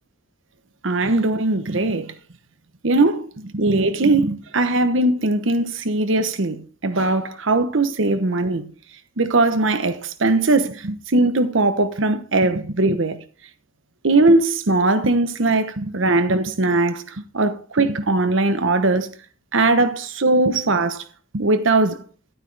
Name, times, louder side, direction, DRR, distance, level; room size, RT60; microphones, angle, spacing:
voice 1, 0.8-2.1 2.8-8.6 9.2-13.2 14.0-17.0 17.3-19.1 19.5-21.0 21.3-22.0, right 2 dB, 60° right, 1.0 m, -20 dB
11.5 x 9.1 x 3.3 m
head